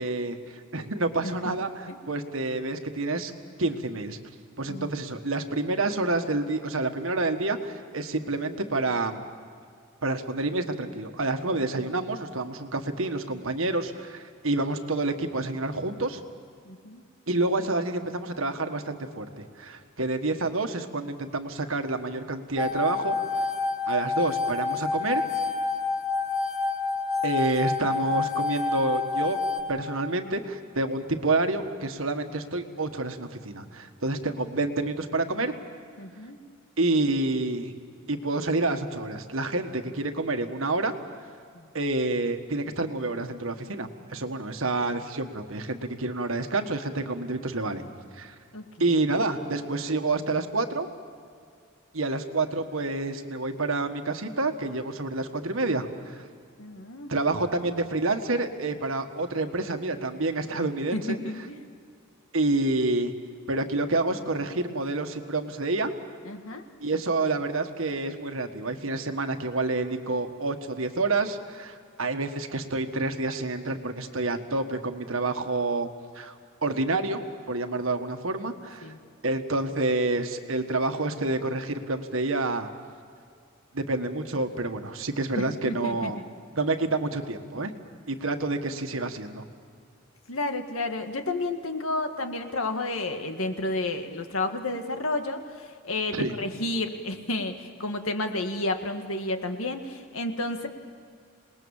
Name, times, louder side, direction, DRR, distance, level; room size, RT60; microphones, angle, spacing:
voice 1, 0.0-3.3 3.6-4.2 4.6-9.3 10.0-16.2 17.3-23.4 23.9-25.2 27.2-29.4 29.7-35.5 36.8-37.7 38.1-40.9 41.7-47.8 48.2-48.3 48.8-50.9 51.9-56.2 57.1-61.2 62.3-63.1 63.5-65.9 66.8-75.9 76.1-76.3 76.6-77.2 77.5-78.9 79.2-82.7 83.7-86.2 86.6-87.7 88.1-89.4 96.1-96.3, right 2 dB, 70° right, 6 dB, 1.6 m, -28 dB
voice 2, 1.2-1.5 1.9-2.0 4.7-5.0 16.6-17.0 36.0-36.4 41.5-41.7 48.5-49.0 56.6-57.1 60.9-61.6 66.2-66.6 78.8-79.0 85.3-86.3 88.6-88.8 90.3-100.7, left 2 dB, 80° left, 6 dB, 1.8 m, -31 dB
sound 1, 22.6-29.6, left 4 dB, 15° left, 2.1 m, -28 dB
27.5 x 20.0 x 7.3 m, 2.2 s
head